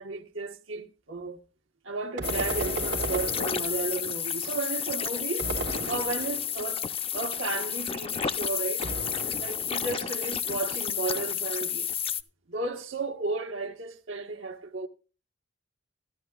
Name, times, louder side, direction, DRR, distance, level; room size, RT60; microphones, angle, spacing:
voice 1, 0.0-1.4 1.8-5.5 5.9-6.9 7.1-8.9 9.4-11.9 12.5-14.9, right 3 dB, 85° right, 1.2 m, -33 dB
sound 1, 2.2-12.2, left 8 dB, 30° left, 0.5 m, -31 dB
sound 2, 2.2-4.1 5.4-6.6 8.8-9.8, right 3 dB, 65° right, 1.2 m, -35 dB
15.5 x 13.0 x 2.3 m
head